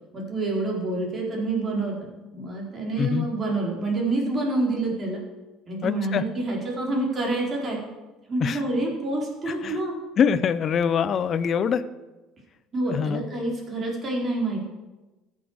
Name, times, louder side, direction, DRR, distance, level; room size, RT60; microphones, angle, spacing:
voice 1, 0.1-2.0 2.3-5.2 5.7-7.8 8.3-10.0 12.7-14.6, right 2 dB, 35° right, -1 dB, 4.3 m, -27 dB
voice 2, 5.8-6.2 8.4-8.6 9.5-9.8 10.2-11.8 12.9-13.2, left 7 dB, 45° left, 14 dB, 0.7 m, -24 dB
14.0 x 7.5 x 6.4 m, 1.1 s
supercardioid pair, 90°, 0 cm